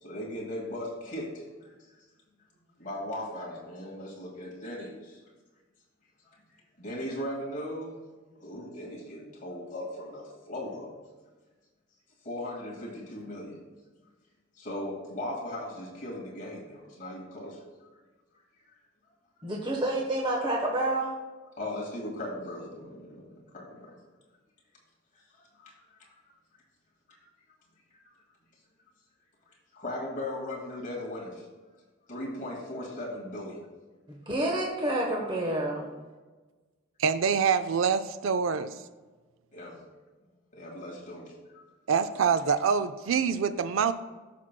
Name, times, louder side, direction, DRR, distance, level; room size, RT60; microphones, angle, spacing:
voice 1, 0.0-1.7 2.8-5.2 6.8-8.0 8.4-10.9 12.2-13.6 14.6-17.6 21.6-23.9 25.4-25.7 29.7-31.5 32.1-33.6 39.5-39.8 40.5-41.6, left 1 dB, 40° left, -3 dB, 2.0 m, -38 dB
voice 2, 19.4-21.1 34.1-35.9, right 1 dB, 25° right, -1 dB, 1.0 m, -29 dB
voice 3, 37.0-38.7 41.9-43.9, right 6 dB, 85° right, 11 dB, 0.4 m, -25 dB
14.5 x 6.0 x 2.2 m, 1.3 s
head